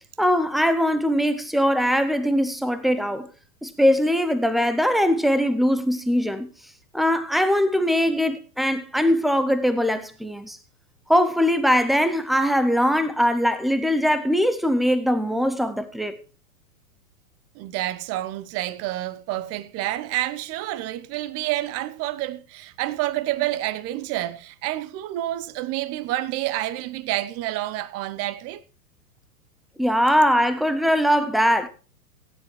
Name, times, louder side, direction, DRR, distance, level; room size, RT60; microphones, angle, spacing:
voice 1, 0.2-3.3 3.6-6.5 6.9-10.6 11.1-16.2 29.8-31.7, equal, ahead, 0.5 m, -21 dB
voice 2, 17.5-28.6, right 15 dB, 30° right, 0.9 m, -28 dB
16.5 x 10.0 x 3.2 m
hypercardioid pair, 115°, 48 cm